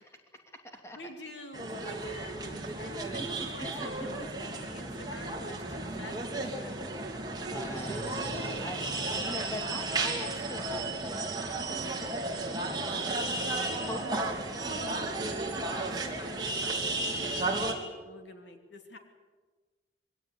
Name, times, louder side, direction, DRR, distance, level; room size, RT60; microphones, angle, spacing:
voice 1, 0.9-6.9 15.0-15.6 16.2-19.0, equal, 85° left, 4 dB, 3.3 m, -46 dB
sound 1, 1.5-17.7, right 2 dB, 20° right, 2.9 m, -34 dB
voice 2, 3.1-3.7 7.5-14.4 15.2-15.9, left 1 dB, 15° left, 3 dB, 2.7 m, -43 dB
23.5 x 17.5 x 9.9 m, 1.3 s
head